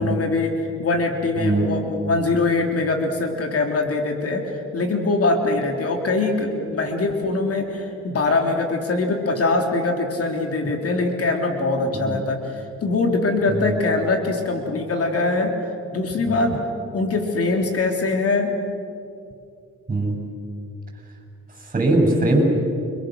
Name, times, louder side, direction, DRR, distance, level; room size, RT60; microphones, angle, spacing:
voice 1, 0.0-15.5 15.9-16.6 16.9-18.5, left 3 dB, 50° left, 3 dB, 3.5 m, -22 dB
voice 2, 21.7-22.4, right 2 dB, 25° right, 3 dB, 7.7 m, -20 dB
30.0 x 26.0 x 6.5 m, 2.5 s
cardioid pair, 90°, 30 cm